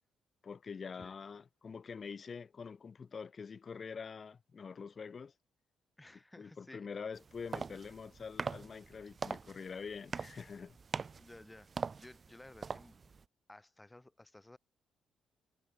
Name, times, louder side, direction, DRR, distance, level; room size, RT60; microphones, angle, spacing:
voice 1, 0.4-5.3 6.4-10.8, left 5 dB, 40° left, 4.0 m, -45 dB
voice 2, 6.0-6.9 11.2-11.7 12.0-13.0 13.5-14.6, left 2 dB, 10° left, 6.5 m, -55 dB
sound 1, 7.1-13.2, right 5 dB, 35° right, 1.5 m, -43 dB
cardioid pair, 90°, 0 cm